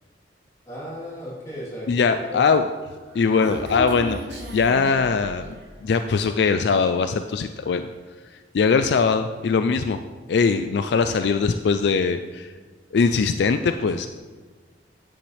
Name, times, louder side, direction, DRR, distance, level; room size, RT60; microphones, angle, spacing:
voice 1, 0.6-2.4 14.0-14.1, equal, 20° left, -7 dB, 3.2 m, -36 dB
voice 2, 1.9-2.6 3.1-5.6 5.8-7.9 8.5-10.0 10.3-12.5 12.9-14.1, left 5 dB, 65° left, 9 dB, 0.4 m, -21 dB
Human voice, 2.8-5.8, right 1 dB, 75° right, 1.5 m, -36 dB
9.9 x 8.7 x 3.3 m, 1.4 s
head